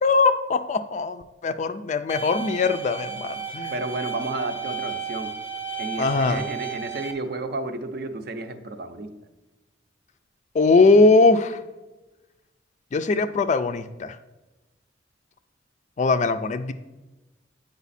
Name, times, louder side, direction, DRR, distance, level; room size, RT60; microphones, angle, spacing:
voice 1, 0.0-3.7 6.0-6.4 10.5-11.6 12.9-14.2 16.0-16.7, left 3 dB, 40° left, 11 dB, 0.4 m, -20 dB
sound 1, 2.1-7.1, right 6 dB, 10° right, 0.7 m, -33 dB
voice 2, 3.7-5.3 5.8-9.1, right 2 dB, 55° right, 8 dB, 0.6 m, -32 dB
8.1 x 5.1 x 4.1 m, 1.1 s
head